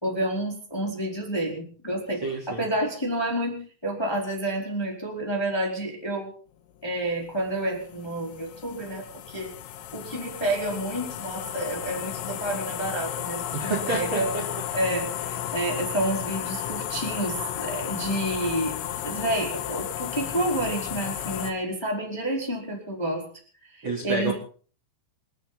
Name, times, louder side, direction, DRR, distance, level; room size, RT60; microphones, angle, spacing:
voice 1, 0.0-6.3 6.8-9.5 9.9-14.3 14.7-18.7 19.0-23.2 23.6-24.3, right 1 dB, 5° left, 0 dB, 3.7 m, -29 dB
voice 2, 2.2-2.6 13.5-14.4 23.8-24.3, right 3 dB, 30° right, 1 dB, 3.9 m, -29 dB
sound 1, 7.1-21.5, left 11 dB, 75° left, 3.5 m, -33 dB
27.5 x 11.5 x 4.1 m, 0.41 s
omnidirectional pair, 5.5 m